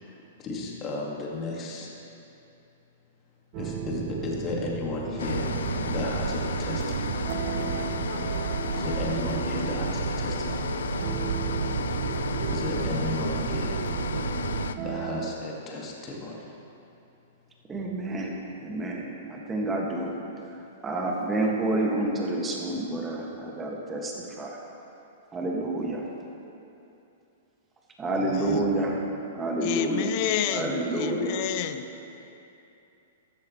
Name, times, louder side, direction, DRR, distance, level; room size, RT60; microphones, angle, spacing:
voice 1, 0.0-1.9 3.6-5.5 5.9-7.2 8.8-10.7 12.4-13.8 14.8-16.5 28.5-28.9, left 3 dB, 30° left, -3 dB, 1.9 m, -34 dB
sound 1, 3.5-15.3, right 7 dB, 40° right, 0.7 m, -36 dB
sound 2, 5.2-14.7, left 6 dB, 80° left, 0.4 m, -33 dB
sound 3, 5.2-14.7, right 8 dB, 75° right, 0.3 m, -32 dB
voice 2, 17.7-20.2 20.5-24.6 25.3-26.0 28.0-29.0 29.3-30.1 30.5-31.4, right 2 dB, 15° right, -1 dB, 1.8 m, -29 dB
voice 3, 28.1-28.7 29.6-31.8, left 10 dB, 45° left, 9 dB, 0.7 m, -30 dB
14.5 x 10.5 x 3.2 m, 2.8 s
hypercardioid pair, 125°, 0 cm